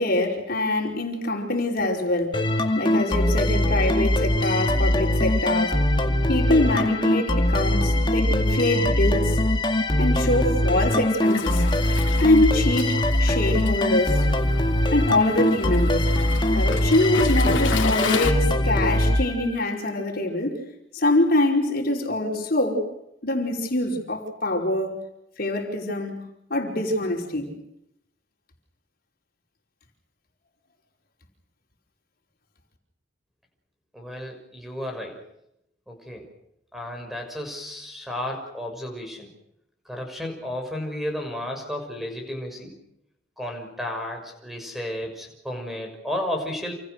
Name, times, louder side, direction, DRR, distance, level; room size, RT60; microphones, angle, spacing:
voice 1, 0.0-5.8 6.3-9.4 10.0-11.6 12.2-14.3 14.9-16.2 16.5-20.6 20.9-22.9 23.2-25.0 25.4-26.2 26.5-27.5, left 1 dB, 50° left, 5.0 m, -24 dB
sound 1, 2.3-19.9, left 1 dB, 25° left, 2.3 m, -22 dB
Waves surf, 11.3-18.3, left 4 dB, 80° left, 3.1 m, -33 dB
voice 2, 33.9-35.2 35.9-36.2 36.7-39.3 39.8-42.8 43.4-46.7, left 1 dB, ahead, 6.4 m, -33 dB
29.0 x 28.0 x 6.7 m
head